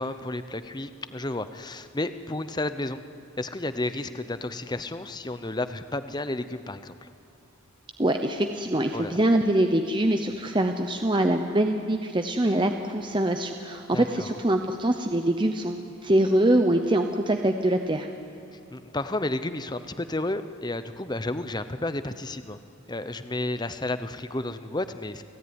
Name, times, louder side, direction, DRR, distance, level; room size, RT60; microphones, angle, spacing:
voice 1, 0.0-3.0 3.4-7.1 8.9-9.2 13.9-14.3 18.7-22.6 22.9-25.2, left 2 dB, 20° left, 11 dB, 0.8 m, -32 dB
voice 2, 8.0-18.1, right 1 dB, 20° right, 5 dB, 0.8 m, -24 dB
29.5 x 17.0 x 9.7 m, 2.5 s
head